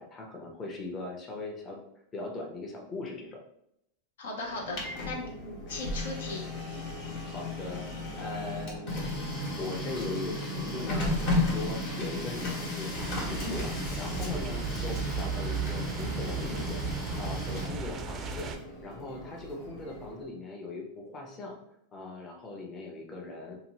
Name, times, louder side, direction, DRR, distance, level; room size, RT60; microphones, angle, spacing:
voice 1, 0.0-1.8 2.1-3.4 7.2-7.8 8.2-16.8 17.2-18.5 18.8-21.6 21.9-23.6, left 2 dB, 30° left, 1 dB, 0.7 m, -40 dB
voice 2, 4.2-6.5, left 2 dB, 85° left, 0 dB, 0.7 m, -38 dB
Printer, 4.5-20.3, left 2 dB, 55° left, 1.2 m, -34 dB
sound 1, 12.9-18.6, right 6 dB, 30° right, 0.4 m, -36 dB
2.8 x 2.3 x 2.9 m, 0.77 s
hypercardioid pair, 120°, 0 cm